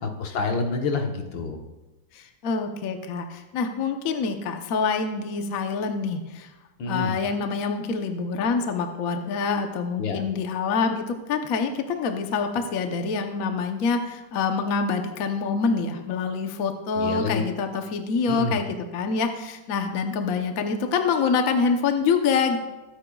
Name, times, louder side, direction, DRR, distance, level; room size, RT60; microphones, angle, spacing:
voice 1, 0.0-1.6 6.8-7.1 10.0-10.2 17.0-17.4 18.3-18.6, left 3 dB, 80° left, 3 dB, 1.9 m, -27 dB
voice 2, 2.1-6.5 6.9-22.6, left 5 dB, 55° left, 5 dB, 1.2 m, -26 dB
21.0 x 10.0 x 2.3 m, 1.1 s
omnidirectional pair, 2.0 m